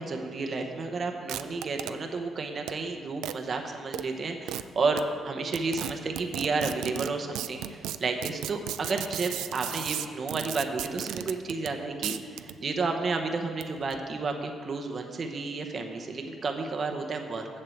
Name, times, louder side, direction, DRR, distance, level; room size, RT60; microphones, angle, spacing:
voice 1, 0.0-17.5, right 3 dB, 45° right, 4 dB, 0.9 m, -31 dB
sound 1, 1.3-1.9 2.7-2.8 3.2-3.4 3.9-4.0 4.5-4.6 5.0-5.1 5.5-11.7 12.0-12.6 13.5-14.0, right 12 dB, 90° right, 0.3 m, -35 dB
7.7 x 6.6 x 7.8 m, 2.3 s
cardioid pair, 90°, 0 cm